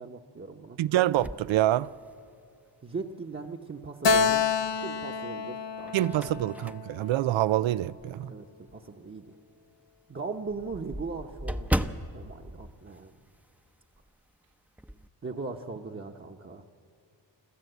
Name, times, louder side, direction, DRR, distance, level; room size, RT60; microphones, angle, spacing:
voice 1, 0.0-0.8 2.8-4.5 4.8-5.9 8.2-9.4 10.1-13.2 15.2-16.6, right 4 dB, 30° right, 1.1 m, -39 dB
voice 2, 0.8-1.9 5.9-8.3, right 14 dB, 85° right, 0.5 m, -26 dB
sound 1, 1.2-2.5 3.0-3.1 4.6-5.1 5.6-8.2 8.7-8.8 9.2-9.3 9.6-9.7 9.9-13.7 13.9-14.2 14.5-15.1, equal, 5° right, 0.7 m, -36 dB
Keyboard (musical), 4.0-7.5, left 5 dB, 70° left, 0.9 m, -28 dB
26.5 x 13.5 x 8.1 m
cardioid pair, 65°, 45 cm